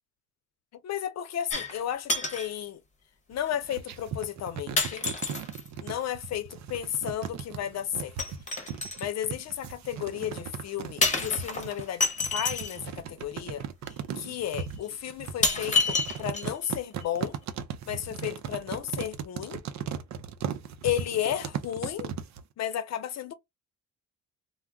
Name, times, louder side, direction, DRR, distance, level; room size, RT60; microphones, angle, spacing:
voice 1, 0.8-2.8 3.3-5.1 5.8-8.1 9.0-13.6 14.2-17.4 17.9-19.6 20.8-22.1 22.6-23.3, left 10 dB, 60° left, 0.6 m, -33 dB
sound 1, 1.5-1.8 2.1-2.5 3.5-3.6 4.8-5.7 8.2-9.1 11.0-12.8 13.9-14.0 14.6-14.7 15.4-16.7 17.0-17.1, left 3 dB, 25° left, 0.9 m, -28 dB
sound 2, 3.3-22.4, right 8 dB, 65° right, 0.6 m, -37 dB
2.3 x 2.1 x 3.5 m
cardioid pair, 90°, 30 cm